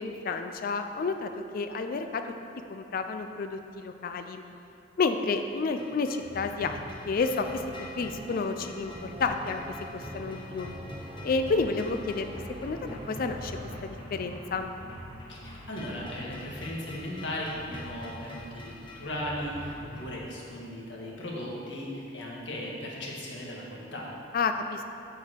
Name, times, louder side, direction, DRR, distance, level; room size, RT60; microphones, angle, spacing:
voice 1, 0.0-2.2 2.7-4.4 5.0-6.8 7.1-9.6 9.9-10.7 11.2-12.3 12.6-13.5 13.8-14.7 24.3-24.8, left 4 dB, 50° left, 7 dB, 0.4 m, -30 dB
sound 1, 5.8-20.1, left 1 dB, 25° left, 1.0 m, -44 dB
sound 2, 7.5-13.8, right 1 dB, 30° right, 0.5 m, -45 dB
voice 2, 15.3-24.1, left 1 dB, 70° left, -3 dB, 1.6 m, -37 dB
7.5 x 6.8 x 4.4 m, 2.8 s
head